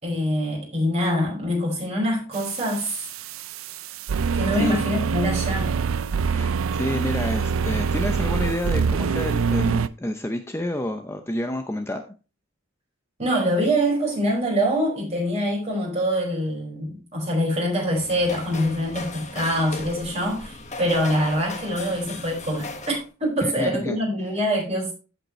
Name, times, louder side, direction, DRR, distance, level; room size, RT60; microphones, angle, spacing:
voice 1, 0.0-3.0 4.3-5.8 13.2-24.9, equal, 30° right, 5.3 m, -24 dB
sound 1, 2.3-9.9, right 5 dB, 80° right, 0.5 m, -25 dB
voice 2, 6.3-12.0 23.4-24.0, left 1 dB, 15° left, 0.6 m, -29 dB
sound 2, 17.7-23.1, left 3 dB, 35° left, 1.3 m, -37 dB
15.0 x 5.3 x 3.2 m
head